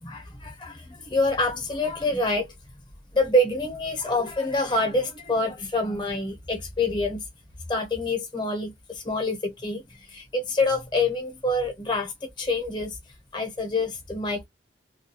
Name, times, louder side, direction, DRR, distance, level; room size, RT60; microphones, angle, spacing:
voice 1, 0.0-2.5 3.1-7.3 7.7-13.0 13.3-14.5, left 2 dB, 25° left, 0.7 m, -26 dB
2.3 x 2.2 x 2.7 m
head